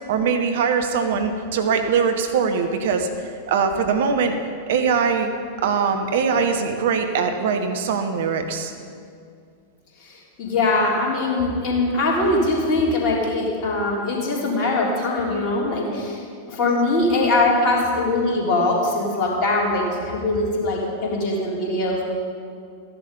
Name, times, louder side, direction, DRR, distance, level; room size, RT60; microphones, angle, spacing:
voice 1, 0.1-3.1 3.5-4.3 4.7-5.3 5.6-8.7 16.6-16.8, right 6 dB, 55° right, 6 dB, 1.1 m, -22 dB
voice 2, 10.0-16.2 16.5-22.0, left 2 dB, 40° left, -3 dB, 3.6 m, -22 dB
14.5 x 10.5 x 5.4 m, 2.3 s
figure-of-eight pair, 90°, 0 cm